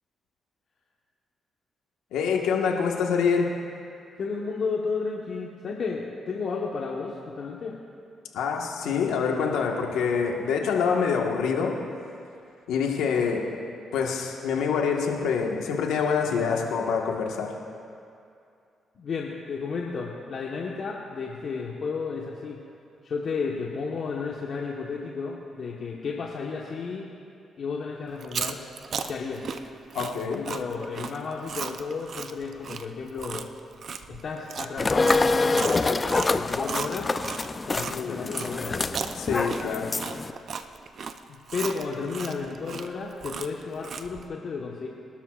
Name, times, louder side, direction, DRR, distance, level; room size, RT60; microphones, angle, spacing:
voice 1, 2.1-3.5 8.3-11.8 12.7-13.4 13.9-17.5 29.9-30.4 37.7-38.3 39.1-39.9, left 6 dB, 85° left, 0 dB, 1.5 m, -26 dB
voice 2, 4.2-7.8 16.3-16.7 19.0-22.6 23.0-27.1 27.6-28.6 29.1-29.4 30.2-33.5 34.1-36.0 36.2-37.1 37.7-38.9 41.3-44.9, left 5 dB, 60° left, -2 dB, 1.3 m, -33 dB
Chewing mastication, 28.1-38.0 38.3-44.2, right 6 dB, 60° right, 0.6 m, -36 dB
sound 1, 34.8-40.3, left 3 dB, 30° left, 0.6 m, -26 dB
24.5 x 12.5 x 2.5 m, 2.5 s
supercardioid pair, 65°, 0 cm